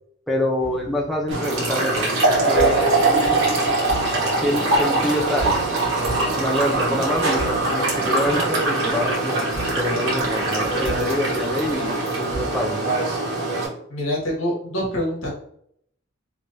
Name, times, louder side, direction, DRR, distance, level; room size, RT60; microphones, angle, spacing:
voice 1, 0.3-2.1 2.5-3.4 4.4-5.6 5.9-9.4 9.7-12.9, equal, ahead, -1 dB, 0.5 m, -26 dB
sound 1, 0.6-12.4, right 2 dB, 35° right, 1.0 m, -37 dB
sound 2, 1.3-13.7, right 2 dB, 80° right, 1.3 m, -22 dB
voice 2, 13.9-15.3, equal, 85° left, -2 dB, 1.3 m, -25 dB
3.3 x 3.0 x 2.6 m, 0.67 s
head